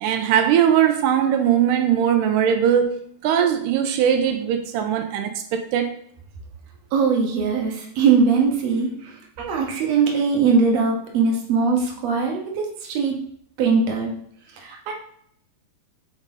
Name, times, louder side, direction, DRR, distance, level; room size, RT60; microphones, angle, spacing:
voice 1, 0.0-5.9, right 9 dB, 85° right, 6 dB, 2.2 m, -20 dB
voice 2, 6.9-13.3 13.6-14.2 14.6-14.9, right 5 dB, 60° right, 0 dB, 2.1 m, -21 dB
5.0 x 4.1 x 5.3 m, 0.66 s
omnidirectional pair, 3.6 m